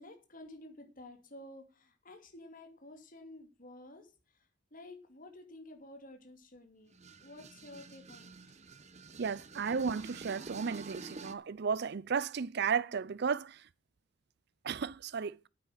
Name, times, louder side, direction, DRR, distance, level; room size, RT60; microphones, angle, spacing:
voice 1, 0.0-4.1 4.7-6.9 7.2-8.3 9.4-9.5, left 1 dB, 45° left, 2.6 m, -51 dB
sound 1, 6.9-11.3, right 4 dB, 35° right, 1.0 m, -49 dB
voice 2, 9.2-13.6 14.6-15.5, right 6 dB, 60° right, 0.5 m, -34 dB
9.2 x 9.1 x 6.4 m
head